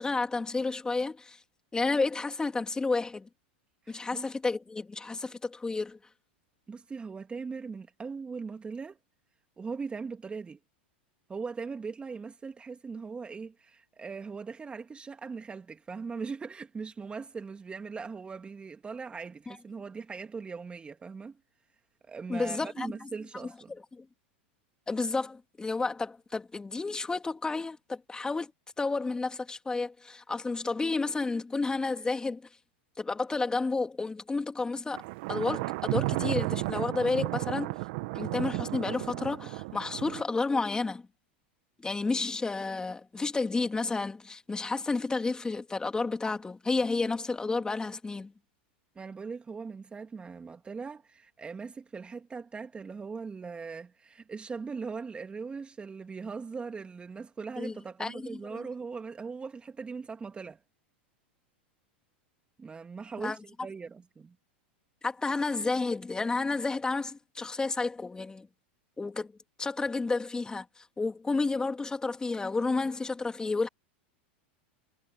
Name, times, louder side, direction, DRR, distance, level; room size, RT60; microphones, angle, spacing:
voice 1, 0.0-1.4 1.7-3.3 3.9-6.0 19.5-19.6 22.3-22.9 23.9-24.0 24.9-28.5 28.8-32.4 33.0-35.0 35.3-37.8 38.1-41.0 41.8-48.3 57.6-58.7 63.2-63.4 65.0-68.5 69.0-69.3 69.6-73.7, left 3 dB, 15° left, 3.2 m, -31 dB
voice 2, 3.8-4.3 6.7-9.0 9.6-10.6 11.3-21.4 22.0-23.7 49.0-60.6 62.6-64.4, right 5 dB, 20° right, 2.5 m, -40 dB
Thunder, 34.9-40.2, right 23 dB, 60° right, 1.8 m, -33 dB
hypercardioid pair, 100°, 6 cm